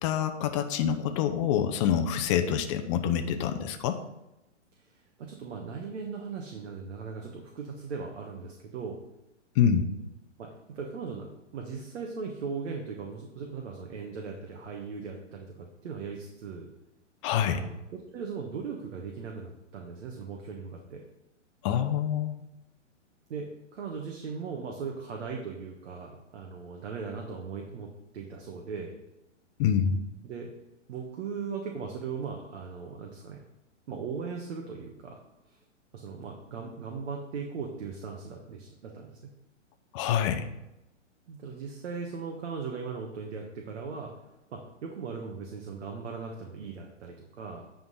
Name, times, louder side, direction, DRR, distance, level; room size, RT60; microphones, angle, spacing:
voice 1, 0.0-4.0 9.6-9.9 17.2-17.6 21.6-22.4 29.6-30.0 39.9-40.5, left 8 dB, 25° left, 7 dB, 0.5 m, -26 dB
voice 2, 4.8-9.0 10.4-16.7 17.5-21.0 23.3-28.9 30.2-30.5 30.9-33.4 33.9-35.2 35.5-35.6 35.9-39.2 41.3-44.1 44.5-47.6, right 5 dB, 60° right, 1 dB, 1.3 m, -38 dB
9.2 x 3.9 x 5.4 m, 0.93 s
hypercardioid pair, 135°, 37 cm